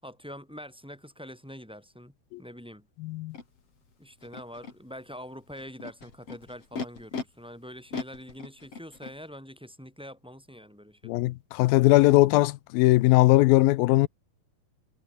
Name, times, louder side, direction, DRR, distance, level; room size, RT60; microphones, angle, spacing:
voice 1, 0.0-2.9 4.0-11.2, equal, ahead, 6.9 m, -44 dB
voice 2, 3.0-3.4 11.1-14.1, left 19 dB, 90° left, 2.5 m, -20 dB
Animal, 3.3-3.4 4.2-4.7 5.6-7.2 7.9-9.1, left 5 dB, 40° left, 4.8 m, -37 dB
omnidirectional pair, 4.2 m